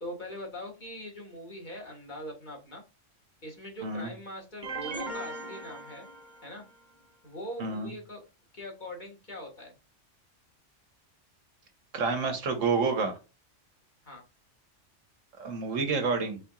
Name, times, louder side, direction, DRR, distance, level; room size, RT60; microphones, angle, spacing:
voice 1, 0.0-2.8 3.4-6.1 6.4-6.6 7.2-8.2 8.5-9.7 14.0-14.2, equal, 40° left, 0 dB, 1.8 m, -42 dB
sound 1, 4.6-6.7, right 2 dB, 40° right, 1.2 m, -39 dB
voice 2, 7.6-7.9 11.9-13.2 15.4-16.4, right 4 dB, 85° right, 5 dB, 1.5 m, -29 dB
4.4 x 4.2 x 2.4 m, 0.30 s
omnidirectional pair, 1.3 m